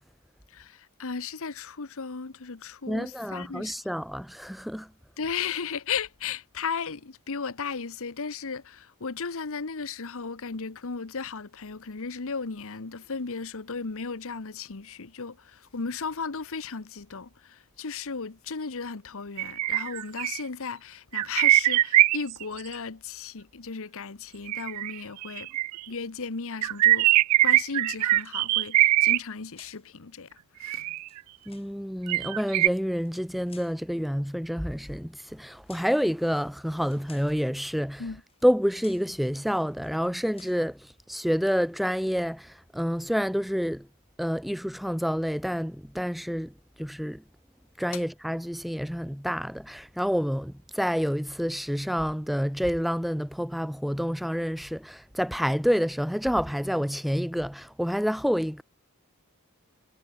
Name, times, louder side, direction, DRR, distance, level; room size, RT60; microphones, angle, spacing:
voice 1, 0.5-3.7 5.2-25.5 25.9-27.1 27.4-30.9 38.0-38.2, left 5 dB, 65° left, 1.1 m, -35 dB
voice 2, 2.9-4.9 31.5-38.2 38.4-43.9 44.2-47.2 47.8-58.6, equal, ahead, 0.7 m, -28 dB
sound 1, 19.4-20.4 21.1-22.6 24.5-25.8 26.6-29.2 30.6-31.2 32.1-32.7, right 16 dB, 90° right, 0.3 m, -22 dB
sound 2, 28.2-28.7 29.5-29.9 30.9-31.7 33.0-33.8 34.7-35.0 35.7-36.0 36.8-37.4 38.3-38.5 38.8-39.1 39.7-40.0 40.3-40.7, left 7 dB, 25° left, 8.0 m, -56 dB
head